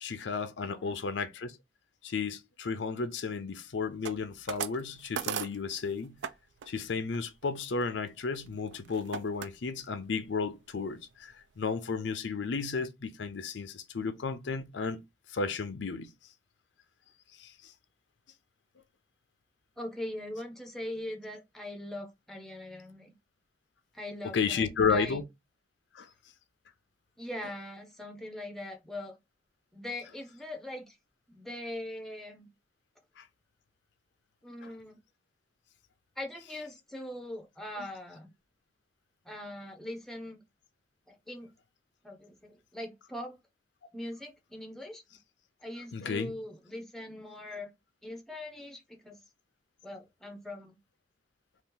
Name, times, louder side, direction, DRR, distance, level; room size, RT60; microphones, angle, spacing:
voice 1, 0.0-1.5 2.0-6.2 6.7-15.0 15.3-16.1 17.4-17.7 24.3-25.2 25.9-26.1 33.2-33.3 34.6-34.7 45.9-46.3, left 5 dB, 80° left, 0.5 m, -33 dB
voice 2, 0.6-0.9 19.8-23.1 23.9-25.2 27.2-29.2 29.7-31.0 31.3-32.5 34.4-35.0 36.2-38.3 39.2-40.4 41.1-41.5 42.0-43.4 43.9-45.0 45.6-47.7 48.0-49.2 49.8-50.8, left 1 dB, ahead, 0.6 m, -41 dB
sound 1, 4.0-6.3 6.6-6.8 7.1-9.5 10.0-10.4 10.8-10.9 11.1-11.7, right 8 dB, 80° right, 0.4 m, -39 dB
2.8 x 2.4 x 3.6 m
head